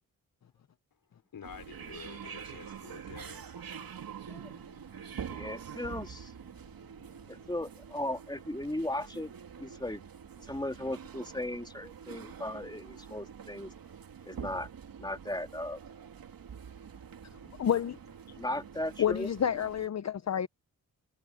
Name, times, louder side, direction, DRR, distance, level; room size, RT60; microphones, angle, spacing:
voice 1, 1.3-3.4, left 7 dB, 75° left, 5.0 m, -48 dB
sound 1, 1.4-19.9, right 7 dB, 80° right, 2.8 m, -46 dB
voice 2, 5.3-6.3 7.3-9.3 9.6-10.0 10.5-13.7 14.2-14.7 15.0-15.8 18.4-19.3, left 1 dB, 10° left, 3.0 m, -36 dB
voice 3, 17.6-18.0 19.0-20.5, left 9 dB, 50° left, 0.7 m, -29 dB
cardioid pair, 70°, 35 cm